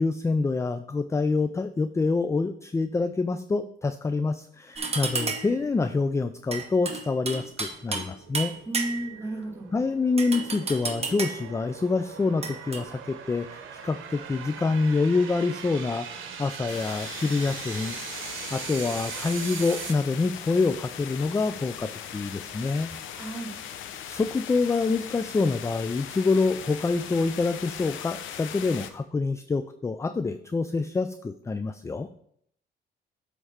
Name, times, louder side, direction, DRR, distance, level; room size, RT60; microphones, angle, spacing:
voice 1, 0.0-8.5 9.7-18.0 18.2-22.9 24.1-32.1, left 3 dB, 15° left, 10 dB, 0.3 m, -26 dB
sound 1, 4.8-5.6 6.5-8.1 8.3-9.2 10.2-11.5 12.4-12.8, right 4 dB, 30° right, 1.1 m, -32 dB
sound 2, 5.5-19.9, right 7 dB, 85° right, 0.9 m, -41 dB
voice 2, 8.6-9.7 23.1-23.5, right 1 dB, 10° right, -3 dB, 2.4 m, -33 dB
sound 3, 16.7-28.9, left 9 dB, 80° left, 0.7 m, -40 dB
7.9 x 3.3 x 5.6 m, 0.69 s
cardioid pair, 90°, 20 cm